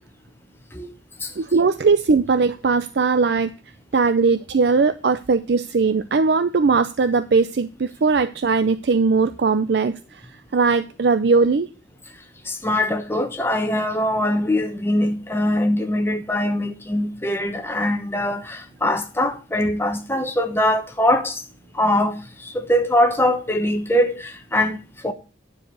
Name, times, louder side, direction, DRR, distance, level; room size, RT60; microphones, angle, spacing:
voice 1, 1.4-3.5 3.9-10.2 10.5-11.7, right 4 dB, 60° right, 0.4 m, -19 dB
voice 2, 12.5-21.4 21.7-24.8 25.0-25.1, left 1 dB, 10° left, 0.9 m, -22 dB
9.7 x 4.7 x 6.7 m
head